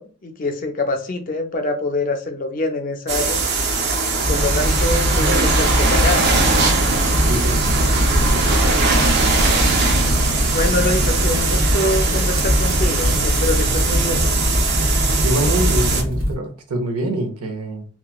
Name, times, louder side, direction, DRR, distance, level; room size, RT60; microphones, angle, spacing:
voice 1, 0.0-3.4 4.3-6.3 10.5-14.2, left 2 dB, 35° left, 5 dB, 0.4 m, -25 dB
sound 1, 3.1-16.0, right 3 dB, 45° right, 0.4 m, -20 dB
Fire, 4.2-16.4, equal, 65° right, 1.1 m, -21 dB
voice 2, 7.3-7.6 8.2-8.3 15.2-17.8, right 1 dB, 90° right, 4 dB, 0.7 m, -24 dB
2.9 x 2.2 x 2.3 m, 0.39 s
head